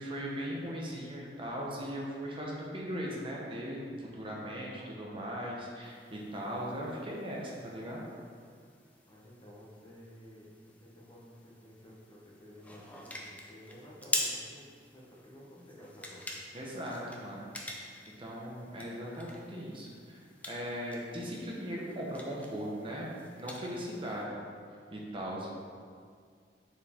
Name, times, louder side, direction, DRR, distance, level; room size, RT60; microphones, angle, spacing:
voice 1, 0.0-8.0 16.5-17.9 18.2-23.1 23.4-24.3 24.9-25.5, equal, 30° right, -3 dB, 0.9 m, -39 dB
sound 1, 5.8-24.2, left 1 dB, 10° left, 0.6 m, -45 dB
voice 2, 9.1-16.3, equal, 25° left, -5 dB, 1.1 m, -53 dB
7.1 x 4.5 x 3.6 m, 2.1 s
head